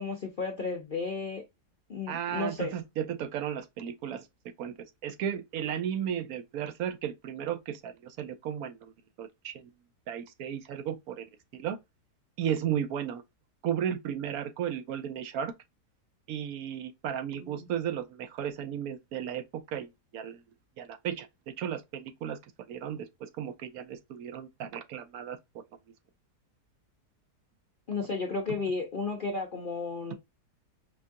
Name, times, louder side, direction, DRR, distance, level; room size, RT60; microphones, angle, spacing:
voice 1, 0.0-1.4 1.9-2.7 17.3-17.7 27.9-30.1, left 4 dB, 55° left, 0.6 m, -33 dB
voice 2, 2.1-4.3 4.6-4.7 5.0-8.9 9.2-9.7 10.1-11.2 11.5-11.8 12.4-13.2 13.6-15.5 16.3-19.9 20.1-20.4 20.8-21.3 21.6-22.4 22.7-25.4, right 9 dB, 70° right, 1.0 m, -34 dB
5.1 x 2.3 x 2.6 m
omnidirectional pair, 1.7 m